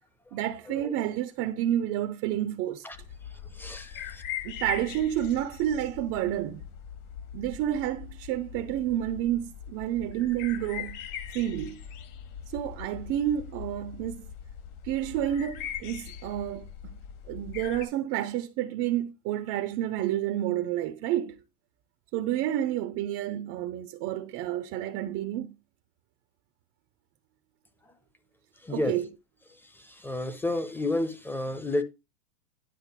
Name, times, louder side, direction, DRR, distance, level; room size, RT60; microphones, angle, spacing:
voice 1, 0.3-2.8 4.4-6.6 7.3-11.0 11.3-11.8 12.5-14.3 14.8-16.7 17.3-21.4 22.1-25.6 28.7-29.1, right 12 dB, 30° right, 0.7 m, -30 dB
sound 1, 2.9-17.8, left 9 dB, 40° left, 2.0 m, -41 dB
voice 2, 3.5-4.2 28.6-29.0 29.7-31.8, left 2 dB, 5° left, 0.9 m, -31 dB
10.0 x 4.0 x 6.7 m
hypercardioid pair, 125°, 49 cm